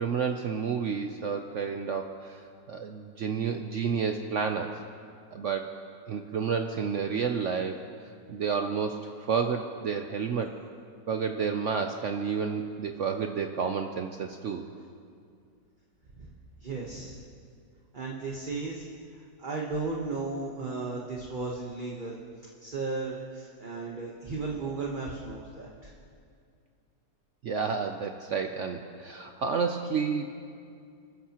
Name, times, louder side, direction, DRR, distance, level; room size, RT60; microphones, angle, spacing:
voice 1, 0.0-4.8 5.3-7.9 8.3-10.5 11.1-14.7 27.4-30.3, right 6 dB, 65° right, 5 dB, 0.7 m, -30 dB
voice 2, 16.6-17.2 17.9-18.9 19.4-22.2 22.6-25.9, right 3 dB, 30° right, -2 dB, 1.1 m, -35 dB
28.5 x 13.0 x 2.9 m, 2.3 s
omnidirectional pair, 1.9 m